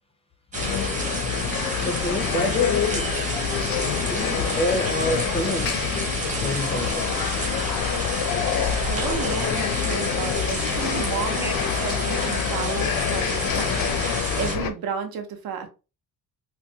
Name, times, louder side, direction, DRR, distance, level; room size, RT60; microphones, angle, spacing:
sound 1, 0.5-14.7, left 8 dB, 75° left, 0.5 m, -26 dB
sound 2, 0.5-14.6, right 2 dB, 20° right, 0.7 m, -31 dB
voice 1, 1.8-3.1 4.0-5.8 6.4-7.2 11.4-11.5, left 2 dB, 15° left, 0.4 m, -28 dB
voice 2, 8.8-15.7, right 7 dB, 85° right, 0.8 m, -33 dB
3.9 x 2.2 x 2.7 m
cardioid pair, 175°, 35 cm